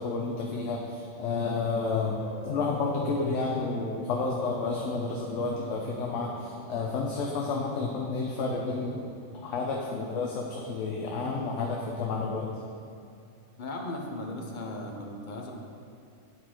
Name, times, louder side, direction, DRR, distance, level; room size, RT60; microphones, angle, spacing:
voice 1, 0.0-2.2 2.4-12.5, left 4 dB, 70° left, -1 dB, 1.0 m, -30 dB
sound 1, 0.8-9.4, left 2 dB, 20° right, 0.8 m, -49 dB
voice 2, 13.6-15.5, left 1 dB, 45° left, 1 dB, 0.8 m, -37 dB
8.4 x 4.5 x 4.3 m, 2.5 s
omnidirectional pair, 1.4 m